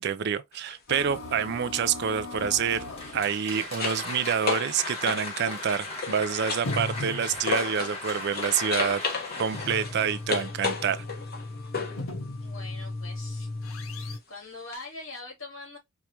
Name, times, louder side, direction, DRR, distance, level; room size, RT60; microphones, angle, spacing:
voice 1, 0.0-2.8 3.1-9.0 9.4-11.0, right 7 dB, 55° right, 0.4 m, -27 dB
sound 1, 0.5-0.8 3.1-8.0 8.3-12.1 14.7-14.8, left 4 dB, 50° left, 1.1 m, -34 dB
sound 2, 0.9-3.3 4.1-4.2 4.6-4.7 5.7-5.8 6.5-7.6 9.1-14.2, left 2 dB, 90° left, 0.8 m, -37 dB
Applause, 2.6-10.7, left 2 dB, 30° left, 1.8 m, -38 dB
voice 2, 12.4-13.5 13.9-15.8, left 3 dB, 65° left, 2.7 m, -43 dB
4.6 x 2.5 x 2.8 m
head